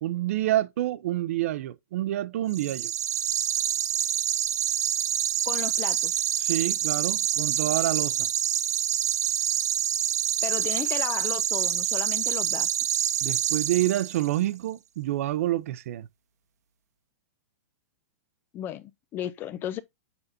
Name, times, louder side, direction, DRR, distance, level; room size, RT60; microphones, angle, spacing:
voice 1, 0.0-2.9 6.4-8.3 13.2-16.1, right 14 dB, 60° right, 0.5 m, -28 dB
sound 1, 2.5-14.3, right 10 dB, 80° right, 1.0 m, -27 dB
voice 2, 5.5-6.2 10.4-12.7 18.5-19.8, left 11 dB, 25° left, 0.4 m, -34 dB
6.8 x 5.6 x 2.6 m
hypercardioid pair, 145°, 9 cm